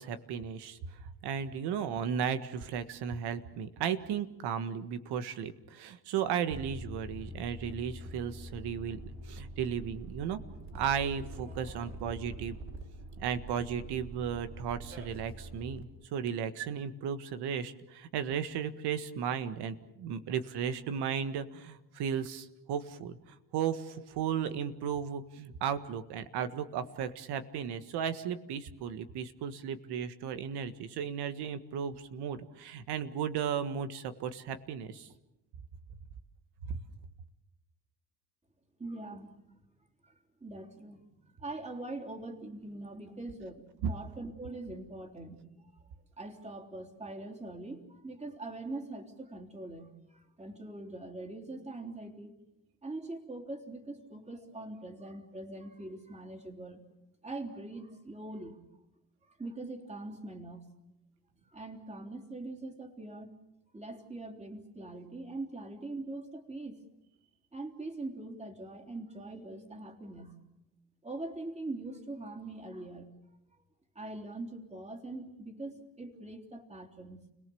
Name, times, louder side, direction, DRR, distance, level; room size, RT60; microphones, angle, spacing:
voice 1, 0.0-10.4 10.7-12.6 13.2-23.2 23.5-35.1 36.7-36.8 43.8-43.9, right 8 dB, 80° right, 10 dB, 1.7 m, -35 dB
sound 1, 6.5-15.8, right 1 dB, 35° right, 4.6 m, -45 dB
voice 2, 38.8-39.3 40.0-40.1 40.4-45.5 46.2-52.3 52.8-56.8 57.2-58.6 59.2-60.6 61.5-63.3 63.7-66.8 67.5-70.4 71.0-73.1 74.0-77.2, right 2 dB, 15° right, 4 dB, 3.4 m, -42 dB
30.0 x 18.5 x 7.1 m, 0.92 s
cardioid pair, 100°, 39 cm